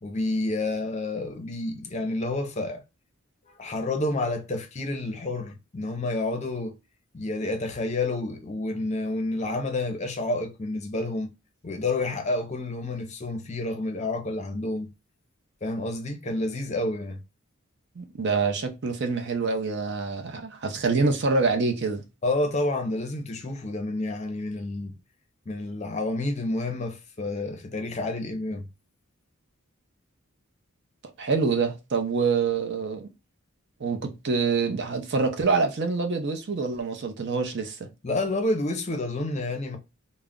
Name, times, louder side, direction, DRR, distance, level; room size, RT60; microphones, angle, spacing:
voice 1, 0.0-2.8 3.6-6.8 7.1-11.3 11.6-14.9 15.6-17.2 22.2-25.0 25.5-28.7 38.0-39.8, left 2 dB, 35° left, 0.6 m, -29 dB
voice 2, 18.0-22.0 31.2-33.1 33.8-37.9, right 4 dB, 55° right, 0.6 m, -26 dB
2.4 x 2.1 x 3.5 m
head